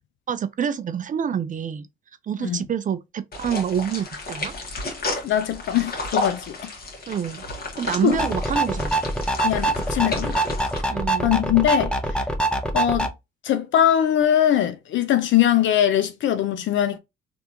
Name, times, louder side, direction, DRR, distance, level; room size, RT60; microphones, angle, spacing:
voice 1, 0.3-1.9 2.2-4.5 7.1-7.4 7.8-9.0 10.9-11.3, right 8 dB, 40° right, 0.5 m, -27 dB
sound 1, 3.3-10.8, left 2 dB, 50° left, 1.5 m, -32 dB
voice 2, 5.2-6.6 8.0-8.2 9.4-10.4 11.2-11.9 12.7-13.1 13.4-17.0, left 10 dB, 75° left, 0.6 m, -21 dB
sound 2, 8.1-13.1, right 1 dB, 5° left, 0.7 m, -24 dB
3.4 x 2.6 x 2.8 m
cardioid pair, 90°, 20 cm